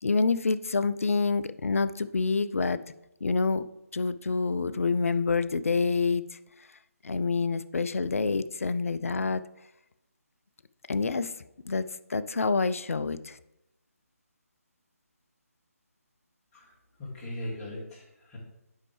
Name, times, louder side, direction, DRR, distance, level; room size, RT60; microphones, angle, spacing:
voice 1, 0.0-2.8 3.2-3.6 3.9-6.3 7.0-9.4 10.9-11.3 11.7-13.4, left 4 dB, 60° left, 13 dB, 0.4 m, -27 dB
voice 2, 17.0-18.4, left 1 dB, 15° left, -7 dB, 2.2 m, -39 dB
8.3 x 5.5 x 3.3 m, 0.87 s
figure-of-eight pair, 150°, 8 cm